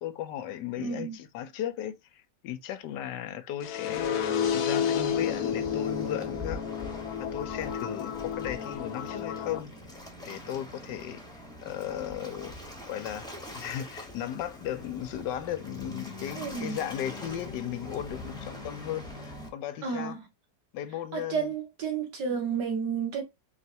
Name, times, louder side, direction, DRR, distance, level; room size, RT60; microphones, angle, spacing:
voice 1, 0.0-6.6 7.2-9.7 10.2-11.2 11.6-12.5 12.9-20.2 20.7-21.5, left 11 dB, 85° left, 1.3 m, -36 dB
voice 2, 0.8-1.2 16.4-16.8 19.8-20.2 21.1-23.2, right 6 dB, 85° right, 2.2 m, -31 dB
sound 1, 3.6-9.6, left 8 dB, 70° left, 1.2 m, -31 dB
Waves surf, 3.9-19.5, left 1 dB, 5° left, 0.9 m, -43 dB
4.6 x 3.2 x 2.7 m
omnidirectional pair, 1.8 m